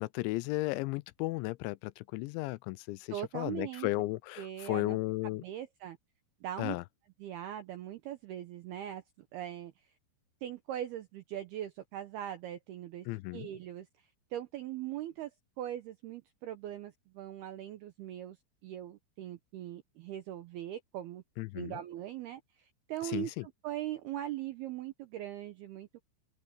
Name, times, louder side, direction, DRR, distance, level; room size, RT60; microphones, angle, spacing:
voice 1, 0.0-5.4 6.6-6.8 13.1-13.5 21.4-21.7 23.0-23.5, left 20 dB, 85° left, 2.7 m, -35 dB
voice 2, 3.1-3.9 4.4-5.0 5.2-6.0 6.4-6.8 7.2-9.9 10.4-13.1 13.3-15.3 15.6-18.4 18.6-21.2 21.5-26.0, right 12 dB, 75° right, 2.4 m, -41 dB
open air
omnidirectional pair, 5.7 m